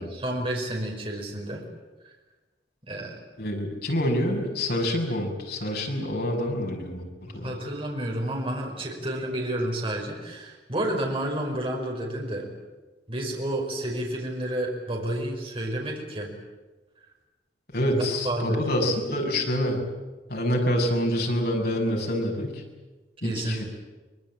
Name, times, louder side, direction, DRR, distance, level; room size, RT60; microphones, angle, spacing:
voice 1, 0.0-1.6 2.9-3.2 7.4-12.5 13.1-16.3 17.9-18.6 23.2-23.6, right 1 dB, 30° right, 0 dB, 5.4 m, -30 dB
voice 2, 3.4-7.5 17.7-19.8 20.3-22.6 23.2-23.6, equal, 60° left, 0 dB, 6.4 m, -27 dB
24.0 x 21.5 x 8.8 m, 1.2 s
head